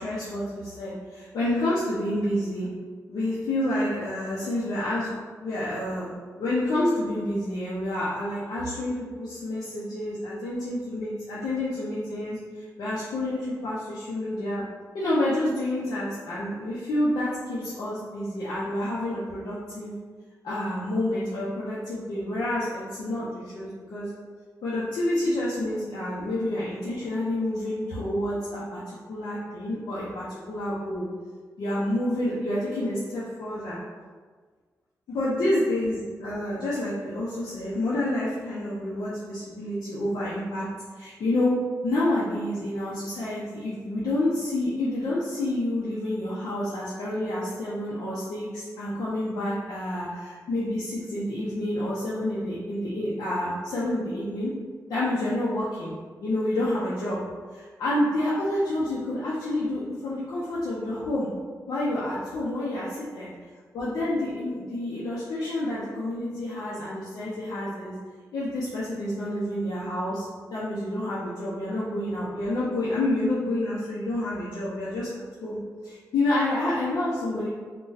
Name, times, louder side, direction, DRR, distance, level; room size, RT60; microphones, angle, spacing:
voice 1, 0.0-2.7 3.1-5.1 5.4-6.1 6.4-12.4 12.8-14.6 14.9-19.9 20.4-24.1 24.6-28.8 29.1-31.0 31.6-33.8 35.1-40.6 41.0-41.5 41.8-54.5 54.9-55.9 56.2-57.2 57.5-61.3 61.7-63.3 63.7-67.9 68.3-70.3 70.5-75.1 75.4-75.6 75.8-77.5, left 1 dB, 90° left, -9 dB, 0.6 m, -28 dB
2.5 x 2.2 x 3.8 m, 1.5 s
cardioid pair, 95°, 7 cm